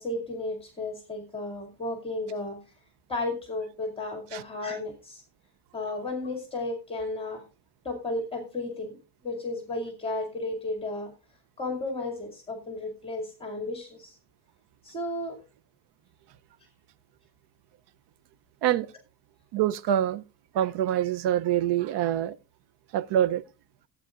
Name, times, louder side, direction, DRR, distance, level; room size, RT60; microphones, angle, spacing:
voice 1, 0.0-2.6 3.1-5.2 5.7-7.4 7.8-9.0 9.2-11.1 11.6-14.2 14.8-15.4, left 2 dB, 15° left, 2.3 m, -33 dB
voice 2, 19.5-20.2 20.5-22.4 22.9-23.4, right 11 dB, 70° right, 0.7 m, -25 dB
16.5 x 8.9 x 2.4 m
cardioid pair, 160°, 42 cm